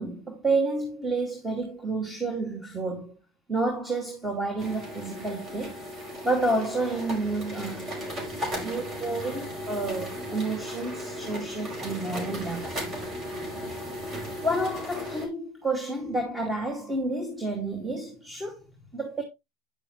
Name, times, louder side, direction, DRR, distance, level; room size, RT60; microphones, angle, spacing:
voice 1, 0.0-3.1 3.5-5.8 6.2-7.9 8.6-12.7 14.4-18.6 18.9-19.2, right 2 dB, 10° right, 2.3 m, -30 dB
sound 1, 4.6-15.3, equal, 30° right, 5.8 m, -36 dB
10.0 x 6.9 x 3.1 m
hypercardioid pair, 95°, 0 cm